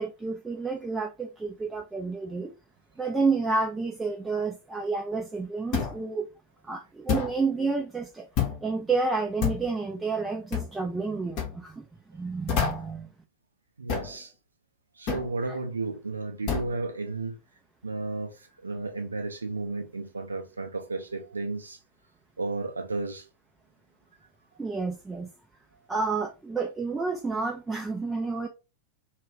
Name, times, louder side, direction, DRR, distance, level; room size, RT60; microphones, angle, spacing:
voice 1, 0.0-2.5 3.0-6.2 6.6-8.3 8.6-11.8 12.1-13.1 15.4-15.6 24.6-25.3 25.9-28.5, right 4 dB, 10° right, 0.4 m, -30 dB
sound 1, 5.7-6.0 7.1-7.4 8.4-8.6 9.4-9.7 10.5-10.7 11.4-11.5 12.5-12.9 13.9-14.2 15.1-15.3 16.5-16.8, left 7 dB, 40° left, 0.8 m, -28 dB
voice 2, 13.8-14.3 15.0-17.4 17.8-18.3 18.6-21.8 22.4-23.3, right 3 dB, 75° right, 0.5 m, -33 dB
2.3 x 2.3 x 3.3 m
figure-of-eight pair, 90°, 0 cm